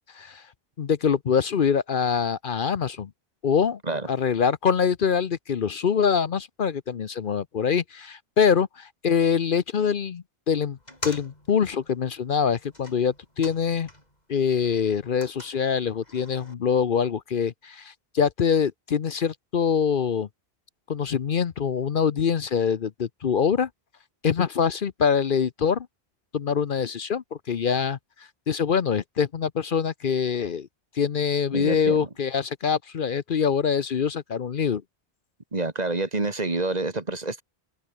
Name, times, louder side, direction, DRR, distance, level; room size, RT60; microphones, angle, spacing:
voice 1, 0.8-3.1 3.4-3.8 4.1-10.8 11.0-13.9 14.3-20.3 20.9-23.7 24.2-25.9 26.3-28.0 28.5-30.7 31.0-34.8, left 7 dB, 60° left, 0.9 m, -24 dB
sound 1, 10.8-14.2 14.5-16.5, left 1 dB, 45° left, 7.7 m, -44 dB
voice 2, 31.5-32.1 35.5-37.4, right 3 dB, 40° right, 2.1 m, -28 dB
omnidirectional pair, 1.0 m